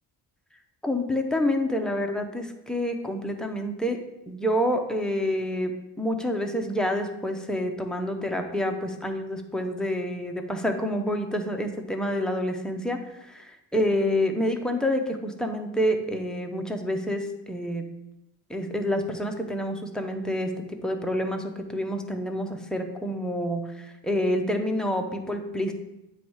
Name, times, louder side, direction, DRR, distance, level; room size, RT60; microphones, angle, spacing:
voice 1, 0.8-4.0 4.3-5.7 6.0-13.0 13.3-17.8 18.5-25.7, equal, ahead, 3 dB, 0.6 m, -28 dB
9.4 x 3.1 x 4.7 m, 0.91 s
cardioid pair, 135°, 40 cm